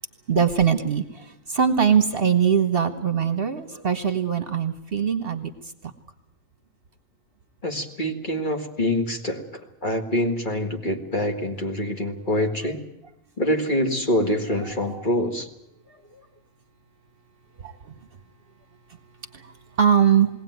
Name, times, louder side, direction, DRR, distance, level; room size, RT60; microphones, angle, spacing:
voice 1, 0.3-5.5 17.6-17.7 19.8-20.3, right 7 dB, 45° right, 9 dB, 1.2 m, -21 dB
voice 2, 7.6-9.4 9.8-12.8 13.4-15.5, left 1 dB, 35° left, 3 dB, 2.1 m, -25 dB
21.0 x 17.5 x 9.3 m, 0.86 s
omnidirectional pair, 1.4 m